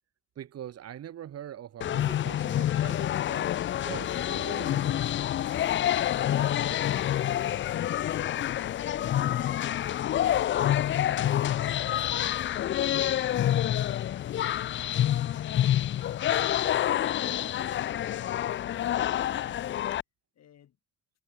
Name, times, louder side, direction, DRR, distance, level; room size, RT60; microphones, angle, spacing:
voice 1, 0.3-5.2, right 11 dB, 55° right, 1.5 m, -43 dB
sound 1, 1.8-20.0, left 11 dB, 40° left, 0.4 m, -27 dB
voice 2, 10.5-18.3 18.6-19.7 20.3-20.8, left 10 dB, 60° left, 6.5 m, -59 dB
cardioid pair, 115°, 29 cm